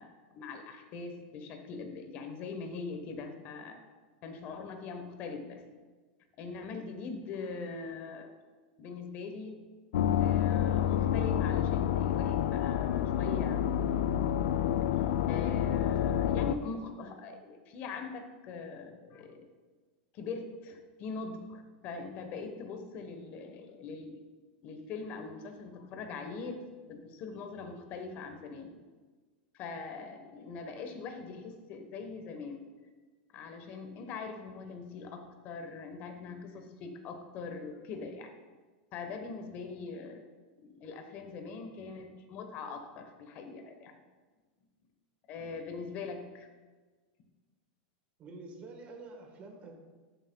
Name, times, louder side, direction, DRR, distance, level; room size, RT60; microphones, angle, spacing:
voice 1, 0.0-3.8 4.2-5.7 6.4-8.3 8.8-9.6 10.2-13.7 15.3-19.5 20.1-24.2 24.6-28.7 29.5-32.6 33.3-38.3 38.9-40.2 40.6-44.0 45.3-46.5, left 4 dB, 35° left, 6 dB, 1.0 m, -42 dB
sound 1, 9.9-16.6, left 10 dB, 85° left, 0.4 m, -28 dB
voice 2, 48.2-49.7, right 3 dB, 25° right, 2 dB, 1.3 m, -47 dB
12.5 x 7.4 x 2.3 m, 1.4 s
supercardioid pair, 160°, 5 cm